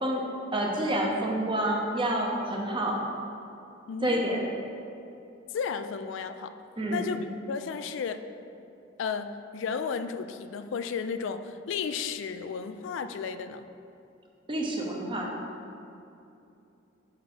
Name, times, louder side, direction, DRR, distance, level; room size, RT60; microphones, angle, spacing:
voice 1, 0.5-3.0 4.0-4.4 6.8-7.1 14.5-15.3, right 1 dB, 25° right, -1 dB, 0.8 m, -28 dB
voice 2, 3.9-4.5 5.5-6.6 6.9-8.2 9.0-13.7, left 6 dB, 75° left, 10 dB, 0.3 m, -33 dB
5.8 x 5.2 x 4.2 m, 2.7 s
head